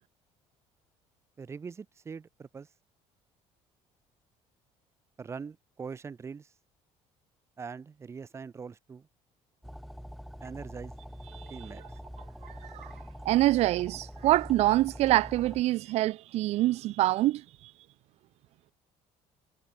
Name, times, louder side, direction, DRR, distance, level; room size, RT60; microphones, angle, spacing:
voice 1, 1.4-2.7 5.2-6.5 7.6-9.1 10.4-11.0 11.5-11.8, right 5 dB, 20° right, 3.1 m, -42 dB
sound 1, 9.6-15.6, equal, ahead, 4.5 m, -44 dB
voice 2, 12.4-12.9 13.3-17.7, right 16 dB, 60° right, 1.7 m, -26 dB
cardioid pair, 155°, 12 cm